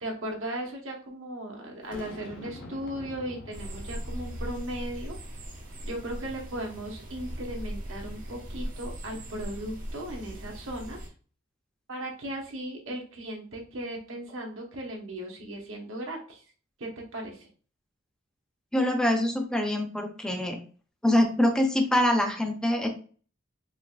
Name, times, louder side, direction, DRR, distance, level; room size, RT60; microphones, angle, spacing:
voice 1, 0.0-5.2 5.8-11.1 11.9-16.4 16.8-17.5, right 1 dB, 80° right, 0 dB, 1.1 m, -37 dB
Boom, 1.9-5.2, left 1 dB, 60° left, 0.7 m, -45 dB
sound 1, 3.5-11.1, equal, 45° right, 0.8 m, -39 dB
voice 2, 18.7-20.6 21.0-22.9, left 1 dB, 5° left, 3 dB, 0.5 m, -24 dB
4.8 x 2.4 x 2.3 m, 0.40 s
head